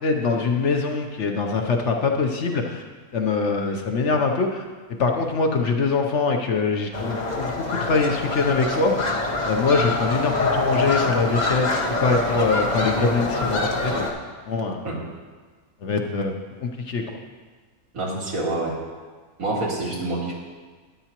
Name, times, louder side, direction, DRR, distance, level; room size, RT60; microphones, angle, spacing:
voice 1, 0.0-2.8 3.1-4.6 5.0-11.7 12.0-13.9 14.5-14.8 15.8-16.3 16.6-17.0, left 4 dB, 60° left, 3 dB, 1.0 m, -23 dB
sound 1, 6.9-14.1, left 2 dB, 35° left, 1.0 m, -25 dB
voice 2, 17.9-18.8 19.4-20.3, right 2 dB, 70° right, -4 dB, 2.4 m, -27 dB
12.5 x 10.0 x 2.9 m, 1.4 s
omnidirectional pair, 1.6 m